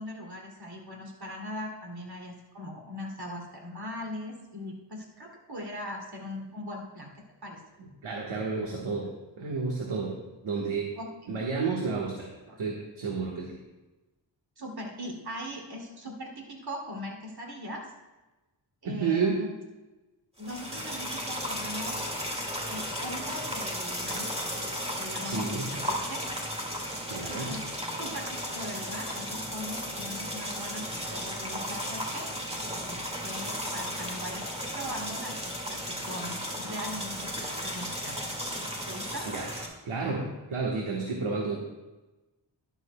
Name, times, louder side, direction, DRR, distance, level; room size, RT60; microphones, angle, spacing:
voice 1, 0.0-7.1 7.4-7.6 11.0-11.3 12.5-12.6 14.6-17.9 18.8-19.5 20.4-22.1 22.7-24.4 25.0-26.2 27.5-27.6 28.0-32.3 32.8-34.5 34.7-37.3 37.6-38.2 38.8-39.3, left 1 dB, 50° right, -1 dB, 2.7 m, -40 dB
voice 2, 7.8-9.1 9.4-10.9 11.3-12.3 12.6-13.6 18.8-19.4 25.2-25.7 27.1-27.5 39.3-39.5 39.8-41.6, right 4 dB, 90° right, -2 dB, 1.5 m, -31 dB
sound 1, 20.4-39.7, equal, 15° right, 2.0 m, -35 dB
12.5 x 11.0 x 2.3 m, 1.1 s
wide cardioid pair, 95°, 47 cm